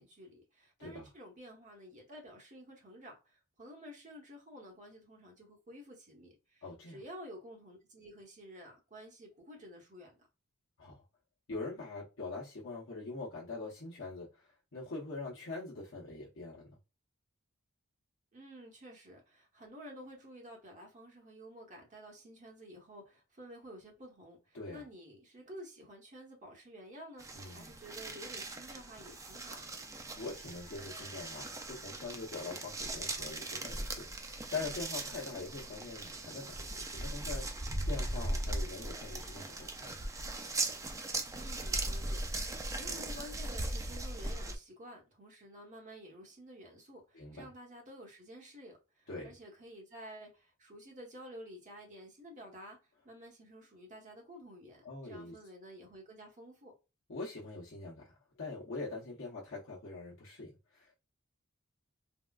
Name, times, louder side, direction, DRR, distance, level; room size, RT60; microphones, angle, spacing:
voice 1, 0.0-10.2 18.3-29.9 41.3-52.8 53.0-56.7, equal, 35° right, 1.1 m, -51 dB
voice 2, 6.6-7.0 10.8-11.0 11.5-16.8 24.5-24.8 27.3-27.7 30.2-37.5 37.9-40.1 47.1-47.5 49.1-49.3 54.8-55.3 57.1-58.0 58.4-61.0, left 3 dB, 65° left, 0.8 m, -43 dB
sound 1, 27.2-44.5, right 2 dB, 15° right, 0.4 m, -39 dB
3.6 x 2.3 x 2.3 m
head